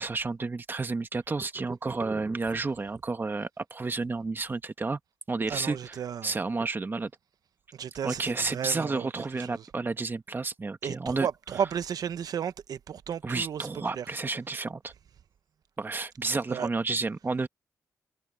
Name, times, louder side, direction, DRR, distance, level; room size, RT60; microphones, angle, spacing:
voice 1, 0.0-5.0 5.3-7.1 8.0-11.3 13.2-14.9 15.8-17.5, right 3 dB, 30° right, 1.3 m, -31 dB
voice 2, 5.5-6.3 7.7-9.6 10.8-13.7 14.0-14.1 16.5-16.7, right 8 dB, 75° right, 0.9 m, -34 dB
cardioid pair, 75°, 7 cm